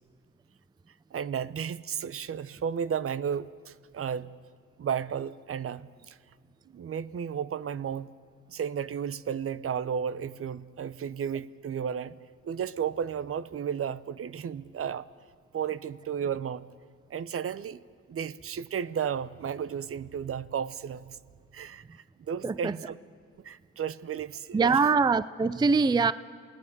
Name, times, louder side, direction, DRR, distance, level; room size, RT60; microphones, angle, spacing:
voice 1, 1.1-4.4 4.8-6.2 6.7-8.1 8.5-12.2 12.4-15.1 15.5-16.7 17.1-17.8 18.1-21.2 21.5-23.0 23.4-24.8, right 8 dB, 50° right, 18 dB, 0.8 m, -33 dB
voice 2, 22.4-22.7 24.5-26.1, right 4 dB, 15° right, 17 dB, 0.5 m, -23 dB
27.5 x 18.5 x 6.9 m, 2.1 s
cardioid pair, 90°, 30 cm